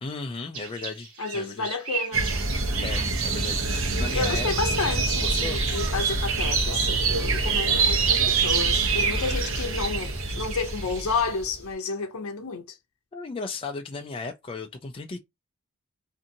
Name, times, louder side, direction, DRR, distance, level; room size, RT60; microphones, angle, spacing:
voice 1, 0.0-1.7 2.8-4.5 5.2-5.6 13.1-15.2, left 3 dB, 25° left, 0.3 m, -35 dB
sound 1, 0.5-11.2, right 5 dB, 85° right, 1.1 m, -40 dB
voice 2, 1.2-2.3 4.1-12.8, left 4 dB, 75° left, 0.6 m, -30 dB
sound 2, 2.1-11.5, right 4 dB, 65° right, 0.8 m, -25 dB
2.7 x 2.6 x 2.6 m
head